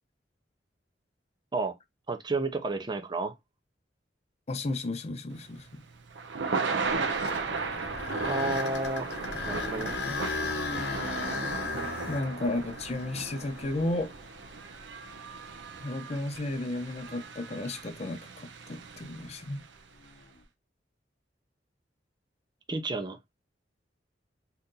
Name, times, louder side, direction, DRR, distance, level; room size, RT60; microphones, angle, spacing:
voice 1, 2.1-3.3 8.3-9.1 9.5-10.0 22.7-23.2, right 3 dB, 25° right, 0.5 m, -31 dB
voice 2, 4.5-5.8 10.1-10.2 12.1-14.1 15.8-19.6, left 2 dB, 35° left, 0.5 m, -33 dB
Thunder / Rain, 5.4-19.6, right 4 dB, 75° right, 0.5 m, -36 dB
sound 1, 6.8-14.9 15.5-15.6 16.3-16.5 20.0-20.3, left 3 dB, 65° left, 0.8 m, -36 dB
2.8 x 2.5 x 3.6 m
head